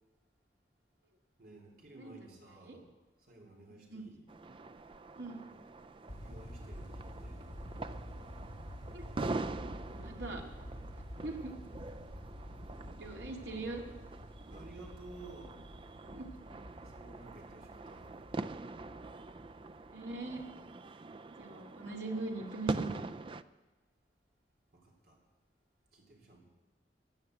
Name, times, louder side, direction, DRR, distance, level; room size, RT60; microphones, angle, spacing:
voice 1, 1.4-2.9 3.2-4.3 6.2-7.5 14.5-15.6 16.8-18.2 24.7-25.2 25.9-26.4, right 3 dB, 55° right, 0 dB, 3.6 m, -54 dB
voice 2, 3.7-4.1 5.2-5.4 8.9-9.4 9.9-10.4 11.2-11.5 13.0-13.8 16.1-16.3 19.9-20.4 21.4-23.1, right 2 dB, 85° right, 1 dB, 2.4 m, -41 dB
sound 1, 4.3-23.4, right 3 dB, 30° right, 0.4 m, -44 dB
sound 2, 6.1-20.7, equal, 80° left, 3.5 m, -49 dB
16.0 x 9.8 x 7.9 m, 1.2 s
head